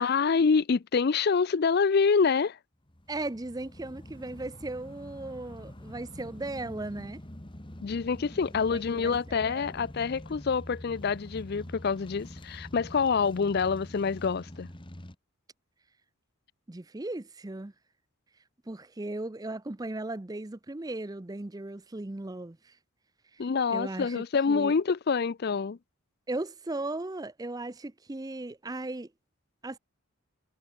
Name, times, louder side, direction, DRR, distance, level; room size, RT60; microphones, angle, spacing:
voice 1, 0.0-2.6 7.8-14.7 23.4-25.8, left 5 dB, 45° left, 0.4 m, -26 dB
sound 1, 2.9-15.1, left 1 dB, 20° left, 1.9 m, -45 dB
voice 2, 3.1-7.2 8.7-9.7 16.7-17.7 18.7-22.8 23.3-23.4 23.7-24.7 26.3-29.1 29.6-29.8, right 2 dB, 15° right, 0.5 m, -37 dB
head